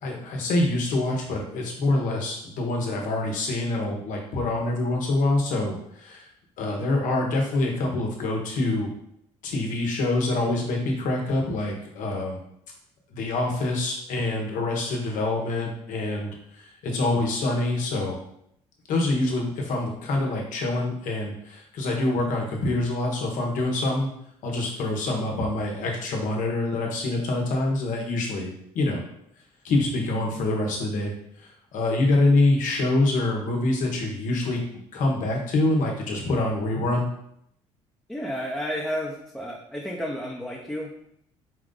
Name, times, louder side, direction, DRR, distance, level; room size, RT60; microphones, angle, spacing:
voice 1, 0.0-6.2 6.6-8.9 9.4-12.4 13.1-18.2 18.9-24.1 24.4-29.0 29.6-31.1 31.7-37.1, left 2 dB, 70° left, 0 dB, 1.2 m, -25 dB
voice 2, 38.1-40.9, equal, 5° left, -3 dB, 0.7 m, -31 dB
4.8 x 2.5 x 3.8 m, 0.73 s
supercardioid pair, 70°, 14 cm